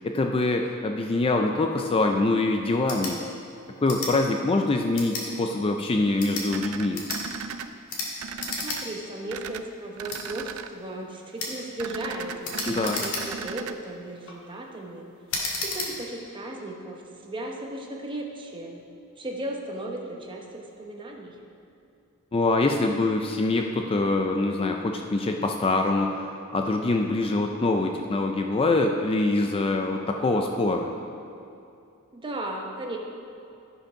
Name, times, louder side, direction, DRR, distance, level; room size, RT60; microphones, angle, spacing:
voice 1, 0.0-3.2 3.8-7.0 12.6-13.0 22.3-30.9, left 2 dB, 25° left, 3 dB, 0.4 m, -24 dB
sound 1, 2.8-3.1 3.8-4.1 4.9-5.3 6.1-6.5 6.9-7.2 7.9-8.1 8.4-8.8 9.1-9.2 10.1-10.2 11.4-11.6 12.4-13.5 14.0-14.4 15.3-15.9, left 3 dB, 65° left, 1.8 m, -32 dB
sound 2, 6.5-7.7 8.2-8.8 9.3-9.6 10.0-10.7 11.8-13.7, right 6 dB, 70° right, 0.4 m, -36 dB
voice 2, 8.5-15.1 15.6-18.8 19.2-21.4 32.1-33.0, right 1 dB, 20° right, 0 dB, 1.0 m, -36 dB
11.5 x 5.3 x 5.6 m, 2.6 s
head